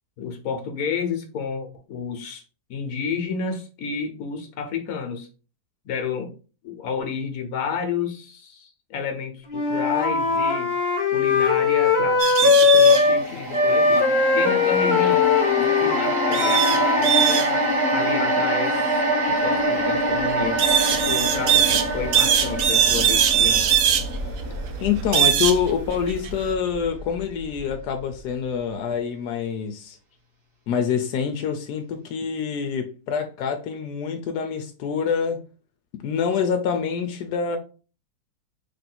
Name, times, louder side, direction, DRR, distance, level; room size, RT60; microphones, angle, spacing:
voice 1, 0.2-2.4 2.7-5.3 5.8-6.3 6.6-10.7 11.1-14.1 14.3-15.3 15.6-18.8 19.3-23.7, left 6 dB, 65° left, 1.3 m, -31 dB
Wind instrument woodwind instrument, 9.5-13.2 13.5-17.4, left 4 dB, 45° left, 1.1 m, -20 dB
sound 1, 12.2-13.0 16.3-17.5 20.6-21.9 22.1-24.0 25.1-25.6 25.9-26.3, right 9 dB, 70° right, 1.0 m, -20 dB
sound 2, 12.9-27.2 27.6-27.7, right 1 dB, 40° right, 1.5 m, -26 dB
voice 2, 24.8-30.0 30.7-35.4 36.0-37.6, left 7 dB, 85° left, 1.2 m, -26 dB
3.5 x 2.6 x 4.2 m
omnidirectional pair, 1.7 m